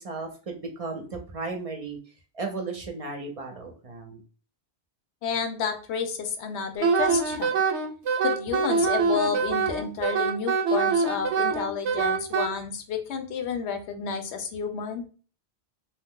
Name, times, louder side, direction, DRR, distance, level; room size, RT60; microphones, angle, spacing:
voice 1, 0.0-2.0 2.3-4.2, right 3 dB, 40° right, 3 dB, 0.5 m, -35 dB
voice 2, 5.2-7.6 8.2-15.1, left 6 dB, 80° left, 6 dB, 0.8 m, -30 dB
Wind instrument woodwind instrument, 6.8-12.5, right 5 dB, 85° right, 0.9 m, -24 dB
2.7 x 2.1 x 3.5 m, 0.38 s
omnidirectional pair, 1.1 m